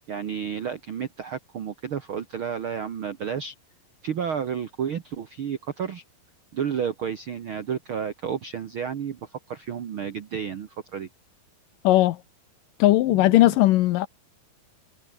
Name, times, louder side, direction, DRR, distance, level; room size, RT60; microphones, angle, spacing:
voice 1, 0.1-3.5 4.0-6.0 6.5-11.1 13.1-13.6, right 7 dB, 65° right, 1.3 m, -31 dB
voice 2, 11.8-12.2 12.8-14.1, left 16 dB, 75° left, 2.2 m, -18 dB
omnidirectional pair, 4.3 m